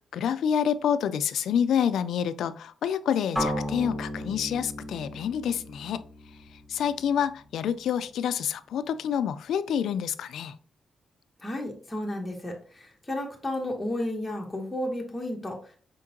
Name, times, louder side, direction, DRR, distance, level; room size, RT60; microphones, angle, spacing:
voice 1, 0.1-6.0 6.5-10.6, left 8 dB, 80° left, 0.3 m, -28 dB
sound 1, 3.4-7.3, equal, 10° right, 1.7 m, -34 dB
voice 2, 11.4-15.8, left 1 dB, 10° left, 0.8 m, -33 dB
5.1 x 3.7 x 2.8 m
cardioid pair, 135°, 0 cm